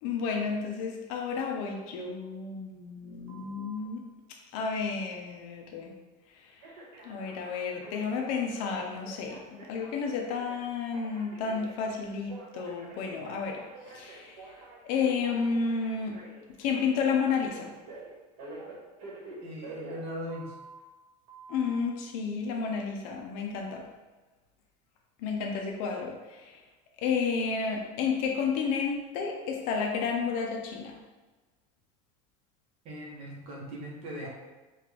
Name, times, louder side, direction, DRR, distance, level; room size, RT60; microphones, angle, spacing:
voice 1, 0.0-4.0 4.5-5.9 7.0-14.5 14.8-16.2 16.6-17.7 21.5-23.8 25.2-26.6 27.0-31.0, left 5 dB, 50° left, 1 dB, 0.6 m, -31 dB
Telephone, 3.3-3.8 6.6-20.8 21.3-21.8, right 2 dB, 75° right, 1.4 m, -48 dB
voice 2, 19.4-20.5 32.8-34.3, equal, 35° right, -3 dB, 1.0 m, -39 dB
5.1 x 2.5 x 3.2 m, 1.2 s
cardioid pair, 170°, 18 cm